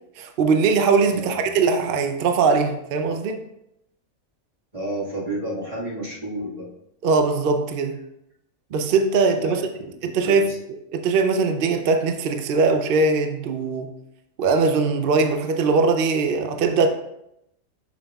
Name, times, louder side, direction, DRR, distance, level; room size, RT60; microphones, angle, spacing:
voice 1, 0.2-3.4 7.0-8.0 8.7-13.9 14.4-16.9, right 4 dB, 55° right, 6 dB, 0.6 m, -21 dB
voice 2, 1.1-1.5 4.7-6.7 9.3-9.7 10.0-10.6, right 1 dB, 25° right, -7 dB, 1.7 m, -31 dB
7.5 x 6.1 x 2.3 m, 0.82 s
omnidirectional pair, 1.5 m